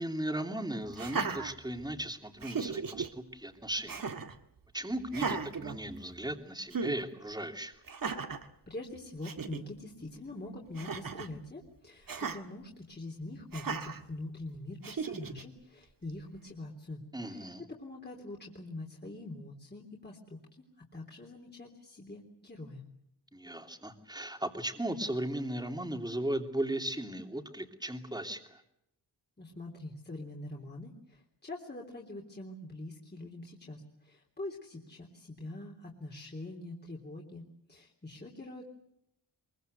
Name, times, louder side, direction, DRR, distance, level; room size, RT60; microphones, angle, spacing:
voice 1, 0.0-4.0 4.7-7.7 17.1-17.6 23.3-28.6, right 1 dB, 10° right, 5 dB, 2.9 m, -36 dB
Laughter, 0.9-2.0 2.4-3.1 3.9-4.4 5.1-6.3 6.7-7.0 7.9-8.5 9.0-9.1 9.2-9.6 10.7-11.3 12.1-12.4 13.5-14.0 14.8-15.4, right 5 dB, 55° right, 1.9 m, -36 dB
voice 2, 8.7-22.8 29.4-38.7, left 2 dB, 25° left, -1 dB, 3.5 m, -44 dB
23.5 x 23.0 x 8.1 m, 0.78 s
wide cardioid pair, 100°, 40 cm